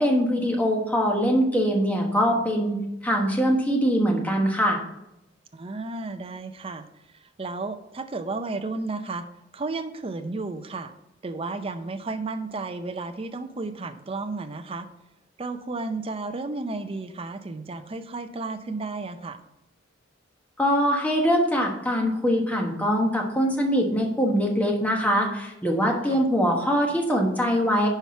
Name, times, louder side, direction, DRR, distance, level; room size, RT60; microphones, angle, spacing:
voice 1, 0.0-2.8 3.0-4.8 20.6-27.9, equal, 10° left, 0 dB, 1.2 m, -23 dB
voice 2, 5.5-6.9 7.2-9.3 9.5-10.9 11.2-14.9 15.4-19.4 26.0-26.2, right 3 dB, 30° right, 8 dB, 0.5 m, -33 dB
5.8 x 4.6 x 5.7 m, 0.86 s
head